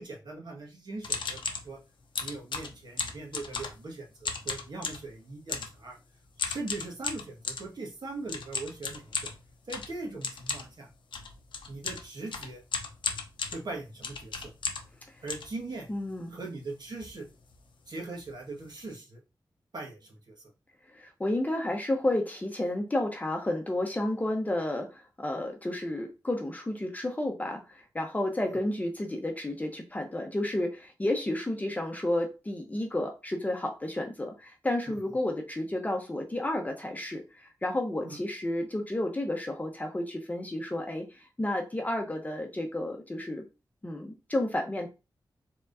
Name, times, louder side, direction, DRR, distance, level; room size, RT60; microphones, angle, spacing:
voice 1, 0.0-1.8 2.2-6.0 6.4-9.3 9.7-10.9 11.7-12.6 13.5-14.5 15.2-15.9 16.3-17.3 17.9-19.2 19.7-20.4 28.4-28.6 34.9-35.1 38.0-38.2, right 3 dB, 60° right, -1 dB, 1.6 m, -40 dB
sound 1, 1.0-1.7 2.2-3.9 4.2-5.1 5.5-5.8 6.4-7.7 8.3-15.0 15.3-16.1 16.6-16.7 16.9-17.2 17.4-17.6 18.2-18.3 18.6-18.9, left 5 dB, 85° left, 0.7 m, -35 dB
voice 2, 15.9-16.4 20.9-43.4 43.8-44.9, left 1 dB, 20° left, 3 dB, 0.8 m, -31 dB
4.5 x 3.7 x 2.6 m, 0.28 s
wide cardioid pair, 90°, 8 cm